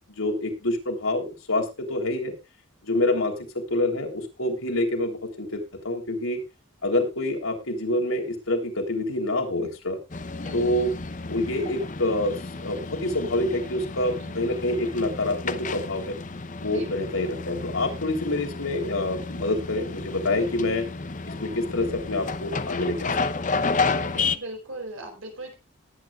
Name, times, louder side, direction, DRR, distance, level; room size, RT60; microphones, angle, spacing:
voice 1, 0.2-2.4 2.8-6.4 6.8-10.0 10.5-12.3 12.6-16.2 16.6-20.9 21.4-23.1 23.7-23.9, left 1 dB, 85° left, 3 dB, 3.4 m, -27 dB
sound 1, 10.1-24.4, left 4 dB, 35° left, 0.7 m, -31 dB
voice 2, 24.0-25.5, right 2 dB, 75° right, 3 dB, 4.5 m, -39 dB
19.5 x 9.2 x 2.4 m, 0.25 s
head